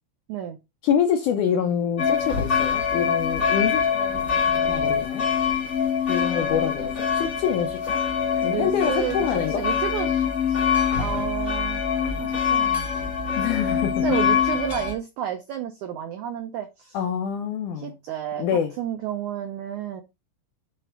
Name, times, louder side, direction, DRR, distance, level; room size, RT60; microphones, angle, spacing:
voice 1, 0.8-4.3 4.6-5.3 6.1-8.0 8.4-9.7 13.4-14.0 16.9-18.0 18.4-18.7, left 8 dB, 75° left, 1.9 m, -26 dB
sound 1, 2.0-14.9, left 7 dB, 20° left, 2.0 m, -24 dB
voice 2, 4.1-4.9 6.2-6.7 8.5-10.7 11.0-13.1 14.0-17.0 17.7-18.4 18.8-20.0, right 10 dB, 85° right, 1.7 m, -32 dB
8.9 x 3.4 x 5.9 m
omnidirectional pair, 4.6 m